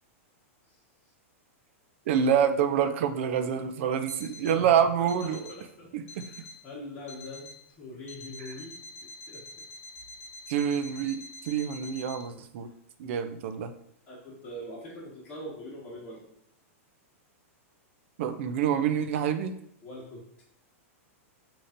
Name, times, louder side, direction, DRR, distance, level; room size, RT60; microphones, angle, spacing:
voice 1, 2.1-5.4 5.9-6.2 10.5-12.7 13.0-13.7 18.2-19.6, right 8 dB, 60° right, 9 dB, 0.5 m, -27 dB
Alarm, 4.1-4.7 5.1-5.7 6.1-6.7 7.1-7.7 8.1-12.2, left 2 dB, 80° left, 0.7 m, -46 dB
voice 2, 5.0-5.4 5.8-6.3 6.6-7.5 7.8-8.8 9.3-9.4 14.1-16.2 19.8-20.2, left 1 dB, 25° left, -9 dB, 1.6 m, -42 dB
6.6 x 2.9 x 2.7 m, 0.71 s
hypercardioid pair, 140°, 8 cm